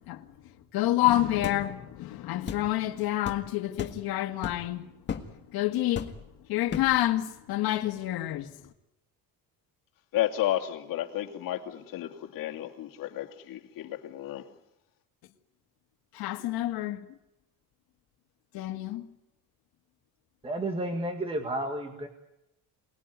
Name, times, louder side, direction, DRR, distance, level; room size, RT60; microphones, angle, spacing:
voice 1, 0.7-4.8 5.5-6.1 6.5-8.5 16.2-17.0 18.5-19.1, left 15 dB, 75° left, 1.9 m, -28 dB
sound 1, 1.4-1.6 2.5-2.7 3.2-3.4 3.8-4.0 4.4-4.7 5.1-5.3 5.9-6.3 6.7-7.0, left 7 dB, 30° left, 1.8 m, -35 dB
voice 2, 10.1-14.4, left 13 dB, 60° left, 2.6 m, -32 dB
voice 3, 20.4-22.1, right 1 dB, 15° right, 1.9 m, -31 dB
28.5 x 20.0 x 9.5 m
cardioid pair, 175°, 37 cm